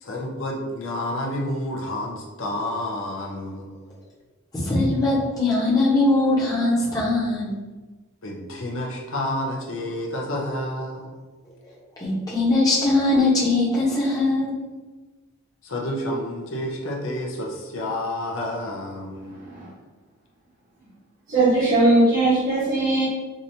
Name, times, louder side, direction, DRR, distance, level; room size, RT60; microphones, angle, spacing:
voice 1, 0.0-3.7 8.2-11.2 15.6-19.4, left 1 dB, 60° left, -1 dB, 0.7 m, -29 dB
voice 2, 4.5-7.6 12.0-14.6, left 2 dB, 15° left, -7 dB, 1.0 m, -21 dB
voice 3, 19.2-19.7 21.3-23.1, right 2 dB, 40° right, -11 dB, 1.4 m, -19 dB
4.9 x 2.6 x 2.8 m, 1.2 s
head